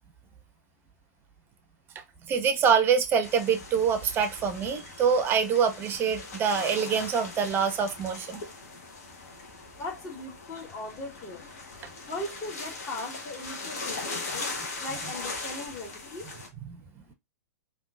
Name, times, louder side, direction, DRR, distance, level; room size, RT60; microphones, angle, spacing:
voice 1, 2.3-8.4 16.7-16.8, right 6 dB, 20° right, 0.6 m, -25 dB
sound 1, 3.2-16.5, left 3 dB, 55° left, 1.1 m, -40 dB
voice 2, 9.8-11.4 12.1-14.5 14.8-16.3, left 2 dB, 30° left, 1.3 m, -38 dB
3.6 x 2.5 x 2.3 m
figure-of-eight pair, 110°, 10 cm